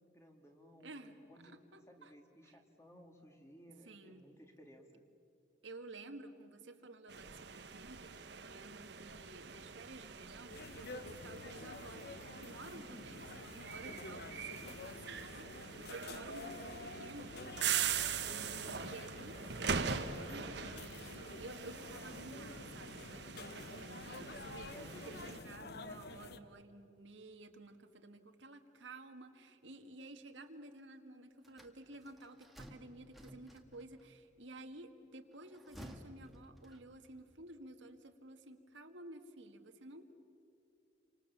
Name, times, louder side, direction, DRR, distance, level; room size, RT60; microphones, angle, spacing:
voice 1, 0.1-1.6 1.9-5.0 12.7-13.3 24.7-25.3, equal, 15° left, 3 dB, 2.4 m, -58 dB
voice 2, 0.8-2.1 2.4-2.6 3.9-4.3 5.6-24.8 25.1-40.1, right 2 dB, 80° right, 5 dB, 1.9 m, -53 dB
sound 1, 7.1-25.4, right 7 dB, 65° right, 1.2 m, -42 dB
sound 2, 10.5-26.4, left 3 dB, 55° left, 1.1 m, -49 dB
sound 3, 31.4-34.0 35.3-37.1, equal, ahead, 1.8 m, -55 dB
30.0 x 25.5 x 7.4 m, 2.6 s
head